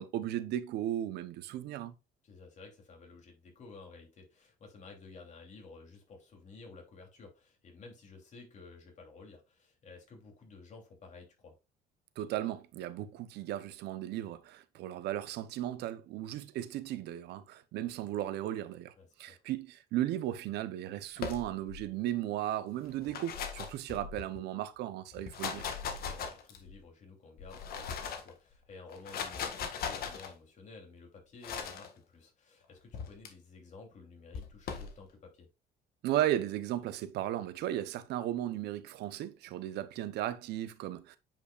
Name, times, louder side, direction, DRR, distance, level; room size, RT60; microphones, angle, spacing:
voice 1, 0.0-1.9 12.2-18.9 19.2-25.7 36.0-41.2, right 12 dB, 80° right, 0.8 m, -35 dB
voice 2, 2.2-11.5 19.0-19.4 25.9-35.5, left 4 dB, 45° left, 3.1 m, -53 dB
sound 1, 21.2-21.8 22.9-24.4 25.1-26.8 27.4-28.3 28.9-30.3 31.4-31.9 32.9-33.3 34.3-34.9, left 6 dB, 65° left, 1.6 m, -39 dB
8.9 x 5.4 x 2.4 m
cardioid pair, 110°, 17 cm